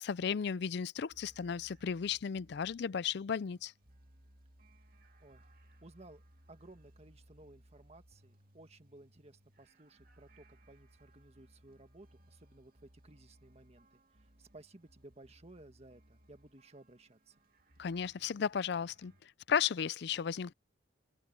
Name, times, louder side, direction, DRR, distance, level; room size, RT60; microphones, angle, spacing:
voice 1, 0.0-3.7 17.8-19.1 19.5-20.5, left 7 dB, 65° left, 0.4 m, -34 dB
sound 1, 1.1-19.2, right 1 dB, 50° right, 2.2 m, -64 dB
voice 2, 5.8-6.2 6.5-17.4, right 2 dB, 35° right, 1.7 m, -57 dB
open air
head